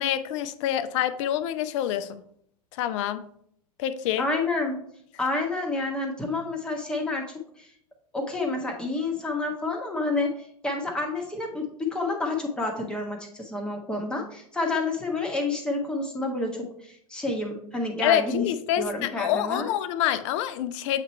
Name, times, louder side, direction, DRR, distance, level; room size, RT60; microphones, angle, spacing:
voice 1, 0.0-2.2 2.8-3.2 3.8-4.3 18.0-21.0, left 11 dB, 50° left, 12 dB, 0.6 m, -26 dB
voice 2, 4.2-4.8 5.2-7.7 8.1-18.5 18.8-19.7, left 2 dB, 5° left, -1 dB, 1.4 m, -29 dB
7.8 x 3.0 x 4.4 m, 0.67 s
hypercardioid pair, 105°, 20 cm